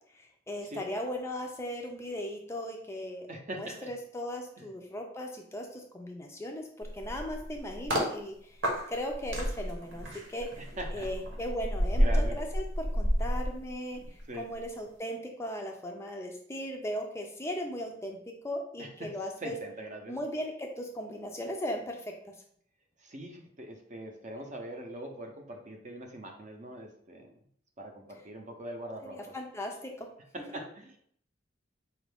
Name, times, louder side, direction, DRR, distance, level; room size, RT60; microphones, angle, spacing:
voice 1, 0.1-3.3 3.6-8.6 8.9-10.5 10.9-18.2 18.4-19.6 20.1-22.1 29.0-30.1 30.5-30.6, equal, 15° left, 2 dB, 0.4 m, -37 dB
voice 2, 3.3-3.9 4.6-4.7 10.8-11.1 12.0-12.4 14.0-14.5 18.8-19.1 19.4-20.2 23.0-27.3 27.8-29.2 30.5-31.0, right 1 dB, 40° right, 3 dB, 0.6 m, -42 dB
sound 1, 6.8-8.1 8.6-14.2 14.5-14.8, equal, 85° right, 1.1 m, -30 dB
4.4 x 2.4 x 3.4 m, 0.62 s
head